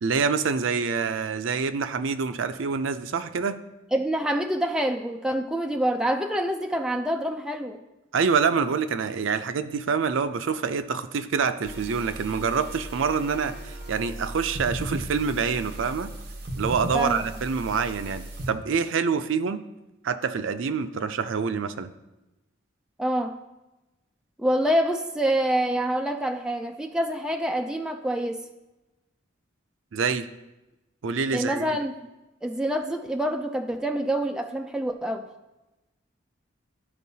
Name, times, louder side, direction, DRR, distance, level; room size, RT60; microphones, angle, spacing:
voice 1, 0.0-3.6 8.1-16.1 16.6-19.6 20.0-21.9 29.9-30.3 31.0-31.8, right 5 dB, 75° right, 11 dB, 0.4 m, -26 dB
voice 2, 3.9-7.8 16.9-17.2 23.0-23.4 24.4-28.4 31.3-32.1 32.4-35.3, right 1 dB, 5° right, 3 dB, 0.4 m, -26 dB
sound 1, 11.6-18.5, right 1 dB, 50° right, 1.1 m, -36 dB
13.0 x 4.5 x 2.8 m, 1.0 s
head